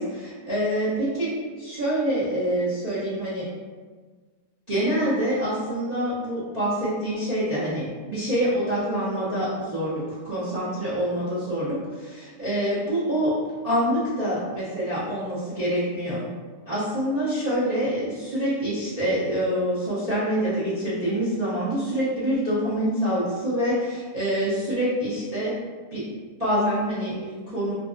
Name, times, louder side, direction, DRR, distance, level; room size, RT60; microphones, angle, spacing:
voice 1, 0.0-3.5 4.7-13.3 13.6-16.2 16.7-25.6 25.9-26.0 26.4-27.7, equal, 50° right, -12 dB, 0.4 m, -26 dB
2.6 x 2.4 x 2.4 m, 1.5 s
omnidirectional pair, 1.7 m